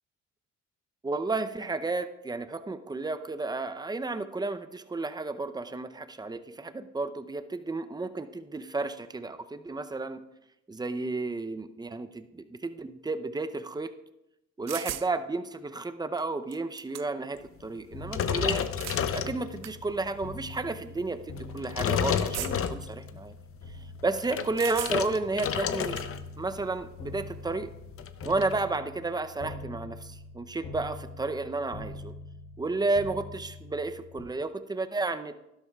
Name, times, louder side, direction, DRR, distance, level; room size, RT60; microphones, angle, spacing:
voice 1, 1.0-10.2 10.7-13.9 14.6-18.6 19.1-23.3 24.0-26.0 26.4-27.7 28.2-32.1 32.6-35.3, right 3 dB, 15° right, 10 dB, 0.6 m, -32 dB
sound 1, 14.7-15.1 16.2-16.3 16.5-17.3 18.5-19.0 19.6-19.7 20.6-20.7 22.3-22.8 24.6-25.2 25.6-26.1, right 12 dB, 60° right, 0.5 m, -38 dB
sound 2, 17.9-34.2, left 3 dB, 85° left, 4.1 m, -44 dB
sound 3, 18.1-19.8 20.3-20.6 21.4-23.2 24.0-26.3 26.5-26.8 27.2-27.3 27.5-28.6, left 8 dB, 50° left, 0.6 m, -30 dB
12.0 x 11.5 x 2.3 m, 0.89 s
cardioid pair, 90°, 30 cm